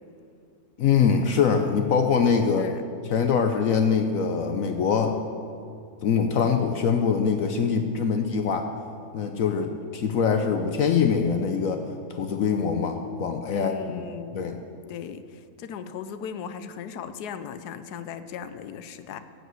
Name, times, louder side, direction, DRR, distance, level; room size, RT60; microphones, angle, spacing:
voice 1, 0.8-2.7 3.0-5.2 6.0-8.7 9.1-11.8 12.1-14.6, left 6 dB, 65° left, 6 dB, 1.0 m, -23 dB
voice 2, 2.6-2.9 13.5-14.6 14.9-19.2, left 7 dB, 85° left, 11 dB, 1.2 m, -37 dB
15.5 x 5.3 x 7.7 m, 2.4 s
omnidirectional pair, 1.6 m